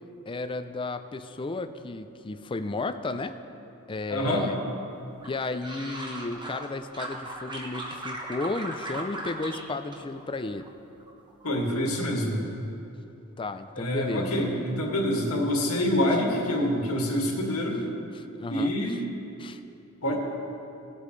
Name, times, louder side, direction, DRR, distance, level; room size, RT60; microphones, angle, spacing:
voice 1, 0.3-3.4 3.9-4.6 5.2-10.7 13.4-14.5 18.1-18.7 19.4-19.6, left 3 dB, 25° left, 9 dB, 0.4 m, -33 dB
voice 2, 4.1-4.5 11.4-12.4 13.8-17.8 18.5-19.0 20.0-20.2, left 1 dB, 85° left, -2 dB, 2.1 m, -26 dB
sound 1, 5.2-6.7 6.9-9.6 9.9-10.7 11.0-11.4, right 1 dB, 20° right, 1.1 m, -37 dB
19.0 x 8.3 x 3.2 m, 2.9 s
head